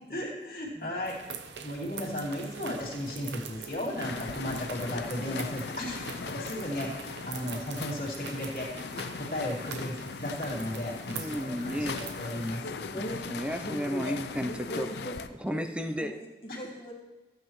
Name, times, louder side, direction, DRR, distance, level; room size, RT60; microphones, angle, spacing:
voice 1, 0.1-1.2 1.6-6.0 6.3-8.9 9.2-13.0 16.5-16.6, left 1 dB, 55° left, -4 dB, 2.7 m, -35 dB
sound 1, 1.0-12.6, right 5 dB, 85° right, 0.8 m, -44 dB
sound 2, 4.0-15.3, left 4 dB, 75° left, 0.5 m, -39 dB
voice 2, 11.1-12.0 12.9-14.9 15.4-16.1, equal, 5° right, 6 dB, 0.5 m, -33 dB
voice 3, 13.6-14.1 14.4-15.7 16.0-16.9, equal, 35° left, -2 dB, 1.6 m, -39 dB
15.0 x 8.8 x 3.1 m, 1.2 s
head